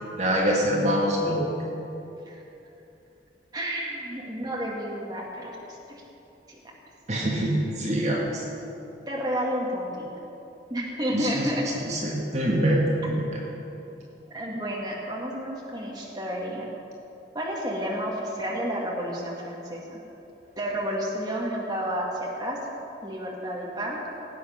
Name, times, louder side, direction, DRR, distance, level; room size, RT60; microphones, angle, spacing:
voice 1, 0.2-1.5 7.1-8.4 11.1-11.5 11.8-13.4, equal, 40° right, -3 dB, 1.8 m, -25 dB
voice 2, 3.5-6.0 9.1-10.1 10.7-11.6 14.3-16.7 17.3-20.0 20.6-22.6 23.0-24.0, equal, 20° right, -4 dB, 1.9 m, -31 dB
18.0 x 8.7 x 5.8 m, 2.9 s
head